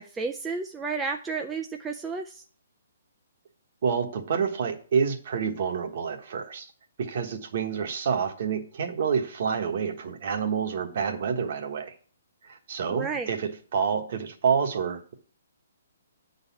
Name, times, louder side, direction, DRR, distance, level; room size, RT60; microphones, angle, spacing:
voice 1, 0.0-2.4 12.9-13.3, right 4 dB, 10° right, 3 dB, 0.3 m, -32 dB
voice 2, 3.8-6.7 7.0-12.0 12.4-15.1, right 6 dB, 45° right, 5 dB, 1.3 m, -28 dB
9.7 x 4.0 x 7.1 m, 0.44 s
hypercardioid pair, 175°, 0 cm